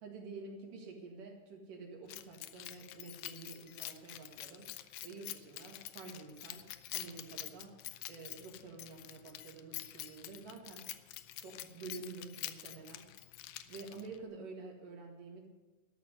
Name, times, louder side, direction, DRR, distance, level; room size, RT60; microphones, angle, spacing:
voice 1, 0.0-4.7 5.0-6.6 6.9-7.7 8.1-10.9 11.4-13.1 13.7-15.5, right 4 dB, 80° right, 1 dB, 3.6 m, -49 dB
Keys jangling, 2.1-14.2, left 14 dB, 85° left, 2.1 m, -47 dB
13.0 x 6.1 x 9.7 m, 1.2 s
omnidirectional pair, 3.7 m